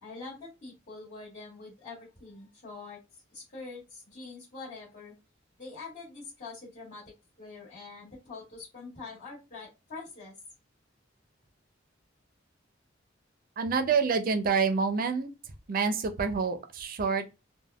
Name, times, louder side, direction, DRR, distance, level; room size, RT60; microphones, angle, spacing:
voice 1, 0.0-5.1 5.6-10.3, left 3 dB, 45° left, 1.4 m, -45 dB
voice 2, 13.6-15.3 15.7-17.3, right 5 dB, 50° right, 0.4 m, -27 dB
3.4 x 2.1 x 2.2 m
head